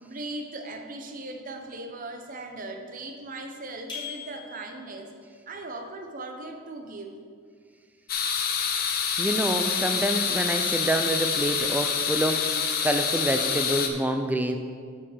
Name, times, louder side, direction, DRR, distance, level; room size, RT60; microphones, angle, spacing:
voice 1, 0.0-5.1 5.5-7.1, right 2 dB, 40° right, 4 dB, 0.7 m, -38 dB
sound 1, 3.9-5.0, left 7 dB, 20° left, 1.9 m, -39 dB
sound 2, 8.1-13.9, left 6 dB, 45° left, 0.6 m, -27 dB
voice 2, 9.2-14.6, right 1 dB, 5° right, 6 dB, 0.4 m, -27 dB
7.1 x 6.0 x 6.3 m, 2.2 s
head